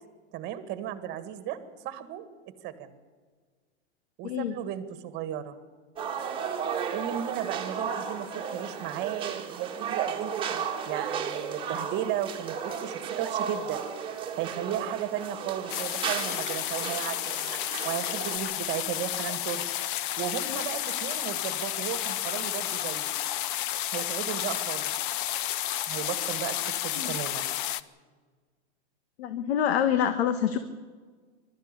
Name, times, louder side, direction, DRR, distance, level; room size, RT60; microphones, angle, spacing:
voice 1, 0.3-1.6 1.8-2.3 2.6-2.9 4.2-5.6 6.9-13.8 14.4-17.6 17.8-19.6 20.2-23.1 23.9-24.9 25.9-27.5, right 11 dB, 30° right, 12 dB, 1.8 m, -35 dB
sound 1, 6.0-18.4, right 7 dB, 15° right, 1.9 m, -34 dB
sound 2, 15.7-27.8, left 12 dB, 50° left, 0.8 m, -31 dB
voice 2, 29.2-30.6, left 9 dB, 65° left, 10 dB, 1.5 m, -26 dB
22.0 x 13.0 x 9.9 m, 1.5 s
supercardioid pair, 160°, 34 cm